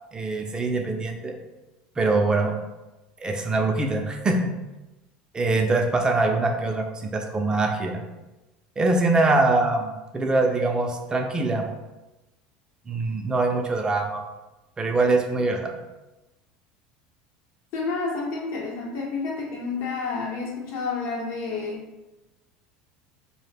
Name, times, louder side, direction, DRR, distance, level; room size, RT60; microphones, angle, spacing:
voice 1, 0.1-1.4 2.0-2.5 3.2-4.5 5.3-8.0 8.8-11.6 12.9-14.2 14.8-15.8, right 2 dB, 20° right, 3 dB, 0.4 m, -23 dB
voice 2, 17.7-21.8, left 4 dB, 60° left, -2 dB, 0.8 m, -30 dB
2.1 x 2.1 x 3.2 m, 1.0 s
supercardioid pair, 95°, 4 cm